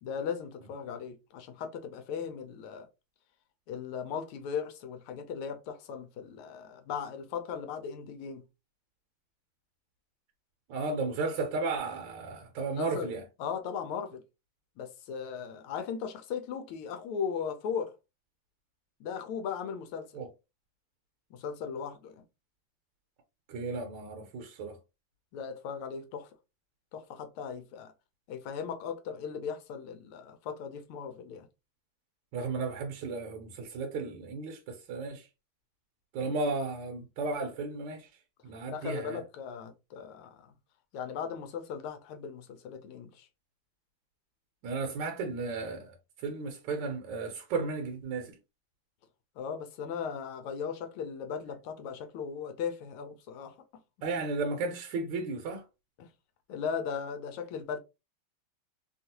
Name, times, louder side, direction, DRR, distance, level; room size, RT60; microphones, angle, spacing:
voice 1, 0.0-2.9 3.7-8.4 12.7-13.1 13.4-14.2 14.8-17.9 19.0-20.1 21.3-22.2 25.3-26.3 26.9-27.9 28.3-31.5 36.2-36.3 38.7-40.5 40.9-43.3 49.4-53.5 56.0-56.1 56.5-57.8, left 7 dB, 85° left, 1.5 m, -37 dB
voice 2, 10.7-13.2 20.1-20.3 23.5-24.8 32.3-35.3 36.1-38.1 38.4-39.2 44.6-45.9 46.2-48.3 54.0-55.6, right 3 dB, 70° right, 1.3 m, -34 dB
3.4 x 2.4 x 2.7 m
omnidirectional pair, 2.3 m